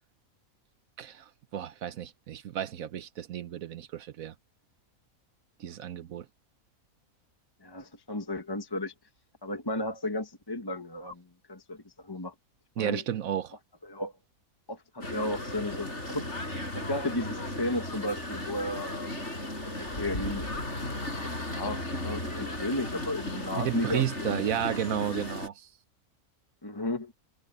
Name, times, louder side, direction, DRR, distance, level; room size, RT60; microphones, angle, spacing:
voice 1, 1.0-4.3 5.6-6.3 12.8-13.5 23.6-25.7, right 10 dB, 75° right, 1.2 m, -32 dB
voice 2, 7.6-8.9 9.4-11.2 11.5-12.3 12.8-13.0 13.8-14.1 14.7-16.3 16.7-19.2 19.7-20.4 21.1-21.2 21.5-24.4 26.6-27.1, left 1 dB, 15° left, 1.3 m, -34 dB
sound 1, 15.0-25.5, left 1 dB, 50° left, 6.8 m, -35 dB
omnidirectional pair, 1.5 m